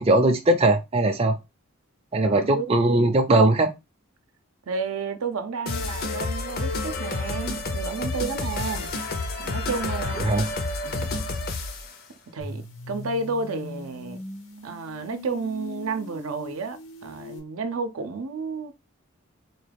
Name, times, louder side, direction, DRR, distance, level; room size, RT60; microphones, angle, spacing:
voice 1, 0.0-1.4 2.1-3.7 10.2-10.4, right 2 dB, 30° right, 0.4 m, -20 dB
voice 2, 2.2-2.7 4.7-8.9 9.4-10.3 10.8-11.2 12.3-14.2 14.6-18.7, right 4 dB, 90° right, 0.6 m, -31 dB
sound 1, 5.7-11.9, left 2 dB, 45° left, 0.6 m, -29 dB
sound 2, 12.4-17.4, left 3 dB, 75° left, 1.0 m, -40 dB
4.1 x 2.3 x 3.3 m
head